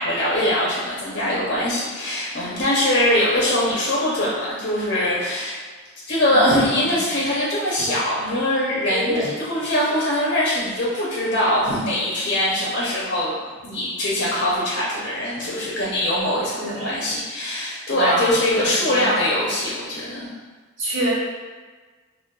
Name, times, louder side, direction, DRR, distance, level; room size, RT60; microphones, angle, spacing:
voice 1, 0.0-5.6 6.1-13.4 13.6-20.3, left 1 dB, 55° left, -7 dB, 0.6 m, -22 dB
voice 2, 8.9-9.3 16.6-16.9 17.9-19.0 20.8-21.1, right 1 dB, 80° right, -7 dB, 1.1 m, -26 dB
3.7 x 2.2 x 2.2 m, 1.4 s
head